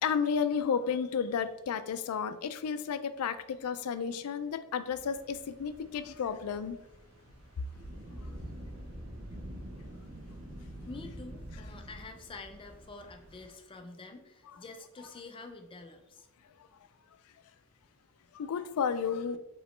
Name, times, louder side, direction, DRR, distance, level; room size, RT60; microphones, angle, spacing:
voice 1, 0.0-6.8 18.3-19.4, left 6 dB, 90° left, 11 dB, 0.4 m, -32 dB
sound 1, 4.9-13.5, equal, 70° right, 0.9 m, -46 dB
voice 2, 10.8-16.3, left 3 dB, 25° left, 5 dB, 0.4 m, -47 dB
5.0 x 3.0 x 3.1 m, 0.94 s
head